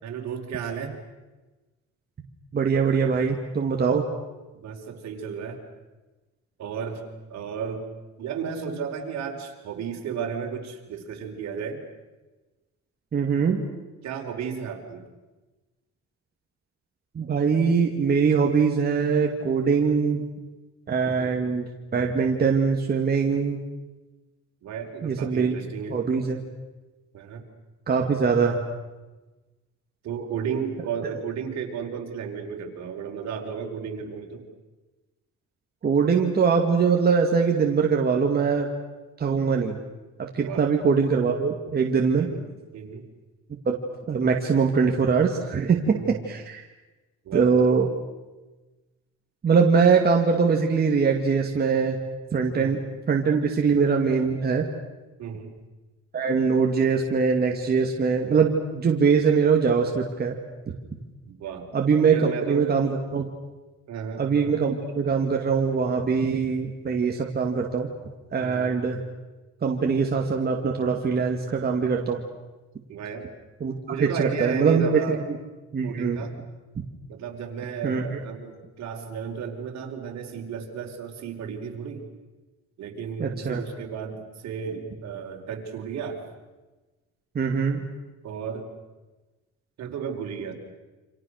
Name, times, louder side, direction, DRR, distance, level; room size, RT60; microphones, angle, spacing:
voice 1, 0.0-0.9 4.5-5.6 6.6-7.0 7.3-7.9 8.2-11.8 14.0-15.0 21.0-21.3 24.6-26.0 27.1-27.4 30.0-34.5 40.4-40.7 42.1-42.4 42.7-43.1 45.9-46.2 47.2-47.5 52.5-52.7 55.2-55.5 61.3-61.7 62.1-62.7 63.9-64.5 68.4-68.7 72.9-73.3 73.9-75.2 75.8-76.3 77.1-82.1 82.8-86.3 88.2-88.7 89.8-90.5, right 6 dB, 65° right, 2 dB, 4.8 m, -33 dB
voice 2, 2.5-4.0 13.1-13.6 17.1-20.2 20.9-23.6 25.0-25.5 25.9-26.4 27.9-28.6 35.8-38.7 39.2-39.8 40.3-42.3 43.7-43.8 44.1-46.6 47.3-47.9 49.4-52.0 52.3-52.8 53.1-54.7 56.1-60.4 61.7-63.3 64.2-67.9 68.3-69.0 69.6-72.2 73.6-73.7 74.0-75.4 75.7-76.2 77.8-78.2 83.2-83.6 87.3-87.8, right 5 dB, 35° right, 1 dB, 2.3 m, -22 dB
29.0 x 27.0 x 6.6 m, 1.2 s
cardioid pair, 140°, 29 cm